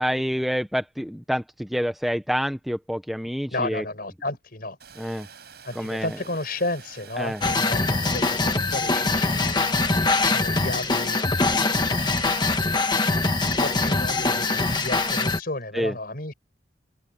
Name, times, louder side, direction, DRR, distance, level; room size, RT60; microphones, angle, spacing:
voice 1, 0.0-3.8 5.0-5.3 5.8-6.1 7.2-7.4 15.7-15.9, equal, ahead, 0.7 m, -27 dB
voice 2, 3.5-4.8 5.6-9.8 10.2-11.2 11.9-12.3 13.6-16.3, left 2 dB, 50° left, 6.2 m, -32 dB
Water, 4.8-15.2, right 6 dB, 55° right, 7.4 m, -47 dB
sound 1, 7.4-15.4, left 3 dB, 25° left, 1.4 m, -23 dB
open air
head